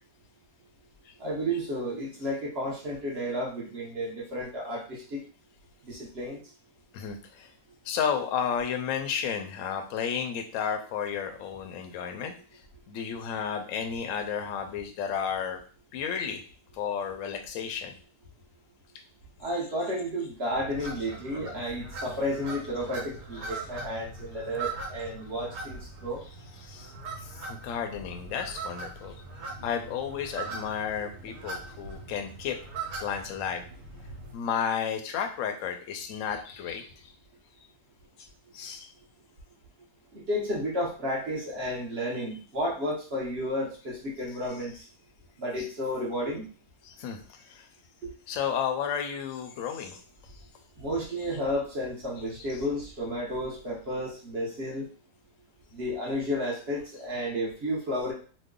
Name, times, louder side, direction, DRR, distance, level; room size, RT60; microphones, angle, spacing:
voice 1, 1.2-5.2 5.8-6.4 19.4-26.2 40.1-44.8 45.4-46.5 48.0-48.1 50.8-54.9 55.7-58.1, equal, 50° right, -4 dB, 0.9 m, -32 dB
voice 2, 6.9-7.5 7.8-12.6 12.9-15.6 15.9-16.4 16.7-17.9 26.6-26.9 27.2-29.2 29.6-32.6 33.0-33.6 34.3-37.1 38.2-38.3 38.5-38.9 45.6-45.7 46.8-47.7 48.3-50.0 52.5-52.6, left 7 dB, 65° left, 5 dB, 0.8 m, -32 dB
sound 1, 20.5-34.3, right 3 dB, 75° right, 1.3 m, -41 dB
3.0 x 2.1 x 3.7 m, 0.40 s
omnidirectional pair, 1.8 m